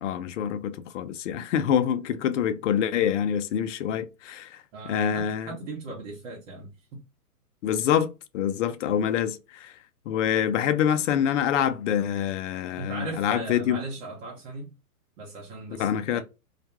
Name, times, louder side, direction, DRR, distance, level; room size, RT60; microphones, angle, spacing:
voice 1, 0.0-5.5 7.6-9.7 10.1-13.8 15.8-16.2, left 9 dB, 55° left, 0.5 m, -26 dB
voice 2, 4.7-7.0 12.8-14.7 15.2-16.2, right 3 dB, 55° right, 1.0 m, -38 dB
2.4 x 2.2 x 2.8 m
hypercardioid pair, 135°, 46 cm